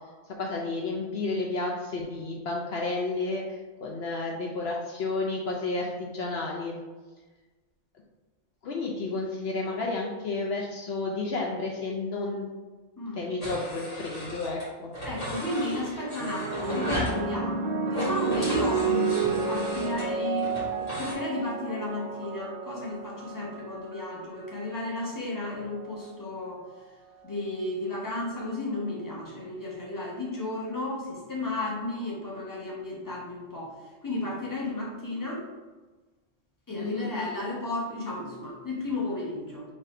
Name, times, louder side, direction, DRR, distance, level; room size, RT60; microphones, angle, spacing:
voice 1, 0.4-6.8 8.6-12.5 13.1-14.9 36.8-37.1, left 3 dB, 65° left, -2 dB, 0.8 m, -31 dB
voice 2, 13.0-13.3 15.0-20.5 20.9-26.6 27.2-33.7 34.0-35.4 36.7-39.6, left 2 dB, 20° left, -4 dB, 1.0 m, -33 dB
sound 1, 13.4-14.7 14.9-17.2 17.9-21.1, equal, 35° left, 1.6 m, -35 dB
sound 2, 16.2-24.8 25.7-26.1, right 5 dB, 55° right, 0.6 m, -31 dB
4.1 x 2.7 x 4.7 m, 1.3 s
omnidirectional pair, 1.2 m